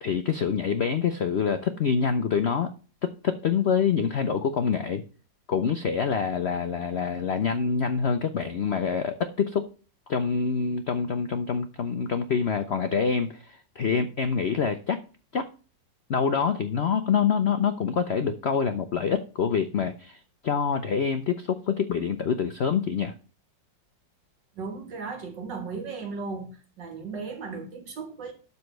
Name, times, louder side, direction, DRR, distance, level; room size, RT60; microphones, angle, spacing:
voice 1, 0.0-2.7 3.0-5.0 5.5-9.7 10.1-15.0 15.3-15.5 16.1-23.1, left 6 dB, 80° left, 0.5 m, -26 dB
voice 2, 24.6-26.5 26.8-28.3, right 4 dB, 70° right, 2.2 m, -36 dB
12.5 x 4.2 x 6.6 m
omnidirectional pair, 2.0 m